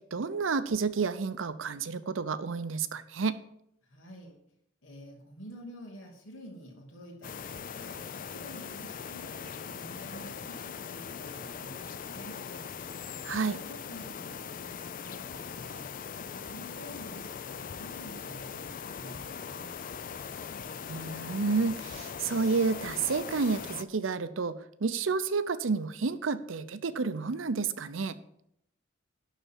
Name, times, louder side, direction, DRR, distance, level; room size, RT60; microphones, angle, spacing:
voice 1, 0.1-3.4 13.2-13.6 20.9-28.1, right 4 dB, 80° right, 13 dB, 0.6 m, -30 dB
voice 2, 3.8-4.4 4.8-7.3 7.6-8.0 8.3-12.4 13.4-15.8 16.2-19.7, equal, 85° left, -1 dB, 2.6 m, -49 dB
sound 1, 7.2-23.8, left 6 dB, 45° left, 0.4 m, -40 dB
11.5 x 4.1 x 7.2 m, 0.74 s
head